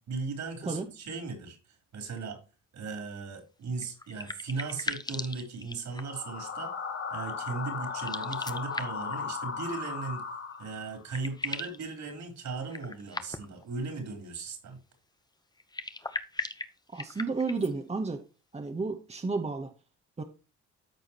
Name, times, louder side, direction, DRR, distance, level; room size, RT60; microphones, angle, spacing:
voice 1, 0.0-1.6 1.9-2.4 2.7-6.7 7.1-10.2 10.6-14.8, right 4 dB, 65° right, 5 dB, 4.1 m, -37 dB
sound 1, 3.8-6.3 7.9-9.2 10.5-10.6 10.9-11.8 12.7-13.6 15.6-17.7, left 2 dB, 15° left, 0.9 m, -38 dB
sound 2, 5.9-11.0, left 5 dB, 45° left, 1.4 m, -36 dB
voice 2, 16.9-18.2 18.5-19.7 20.2-20.3, right 4 dB, 20° right, 5 dB, 1.2 m, -32 dB
13.5 x 4.8 x 3.0 m, 0.32 s
cardioid pair, 90°, 30 cm